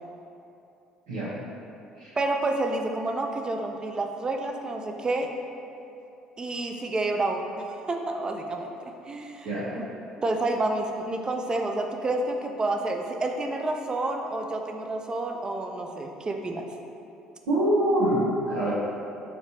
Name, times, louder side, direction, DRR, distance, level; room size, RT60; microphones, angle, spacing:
voice 1, 2.2-5.3 6.4-9.5 9.8-9.9 10.2-16.7, right 2 dB, 25° right, 3 dB, 0.3 m, -29 dB
voice 2, 17.5-18.7, right 1 dB, 75° right, -11 dB, 0.6 m, -25 dB
3.2 x 2.8 x 2.8 m, 2.7 s
hypercardioid pair, 55°, 3 cm